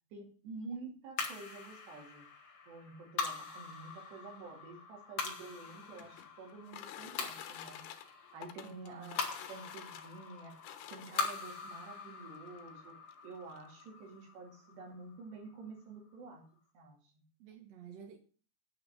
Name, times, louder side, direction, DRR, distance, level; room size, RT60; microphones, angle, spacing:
voice 1, 0.1-2.3 2.7-7.8 8.3-10.6 10.9-13.0 13.2-16.4 16.7-17.2, right 3 dB, 85° right, 1 dB, 4.9 m, -49 dB
sound 1, 1.2-15.7, left 4 dB, 45° left, 1.7 m, -43 dB
sound 2, 5.5-11.7 12.6-12.7 13.1-13.2 13.5-13.9, left 11 dB, 80° left, 3.0 m, -49 dB
voice 2, 8.6-9.2 17.4-18.2, right 8 dB, 70° right, 4 dB, 1.6 m, -51 dB
9.2 x 5.8 x 7.9 m, 0.39 s
omnidirectional pair, 4.7 m